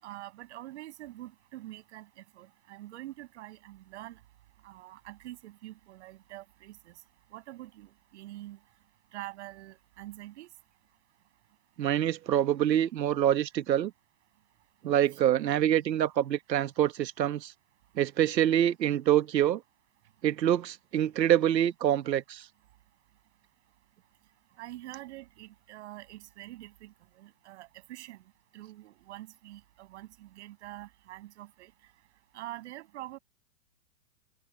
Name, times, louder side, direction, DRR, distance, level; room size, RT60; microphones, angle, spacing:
voice 1, 0.0-4.2 4.6-6.9 7.3-8.6 9.1-10.5 24.6-28.2 28.5-31.7 32.3-33.2, right 16 dB, 40° right, 7.4 m, -45 dB
voice 2, 11.8-13.9 14.8-17.5 17.9-19.6 20.2-22.5, right 11 dB, 80° right, 1.4 m, -26 dB
hypercardioid pair, 170°, 50 cm